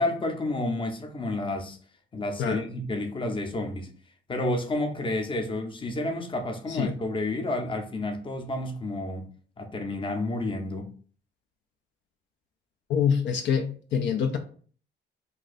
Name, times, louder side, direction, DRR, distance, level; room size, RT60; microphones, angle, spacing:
voice 1, 0.0-1.8 2.1-3.9 4.3-9.3 9.6-10.9, left 2 dB, 25° left, 0.6 m, -30 dB
voice 2, 12.9-14.4, left 7 dB, 65° left, 0.4 m, -25 dB
2.6 x 2.3 x 4.0 m
cardioid pair, 90°, 20 cm